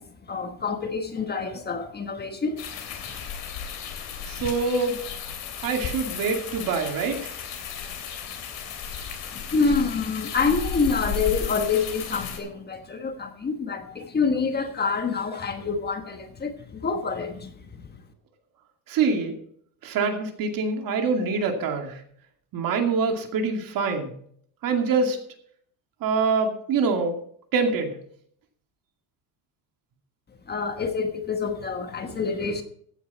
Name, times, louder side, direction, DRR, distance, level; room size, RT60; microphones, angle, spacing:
voice 1, 0.0-3.2 9.3-18.0 30.4-32.6, left 5 dB, 25° left, 1.4 m, -27 dB
sound 1, 2.6-12.4, left 6 dB, 55° left, 3.1 m, -34 dB
voice 2, 4.3-5.0 5.6-7.2 18.9-19.3 19.8-21.9 22.5-24.1 24.6-25.2 26.0-27.2 27.5-28.0, right 4 dB, 55° right, 2.5 m, -25 dB
15.0 x 9.5 x 4.2 m
cardioid pair, 160°, 40 cm